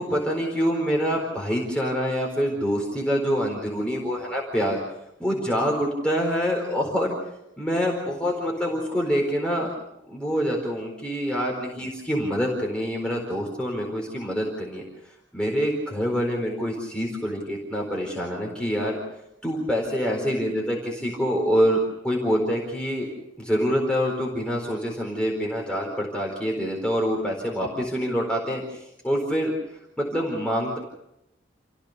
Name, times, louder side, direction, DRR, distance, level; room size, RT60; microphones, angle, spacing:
voice 1, 0.0-4.8 5.2-7.1 7.6-9.7 10.1-14.8 15.3-19.0 19.4-23.1 23.4-29.5 30.0-30.8, equal, 5° left, -2 dB, 4.3 m, -26 dB
30.0 x 16.0 x 6.7 m, 0.83 s
head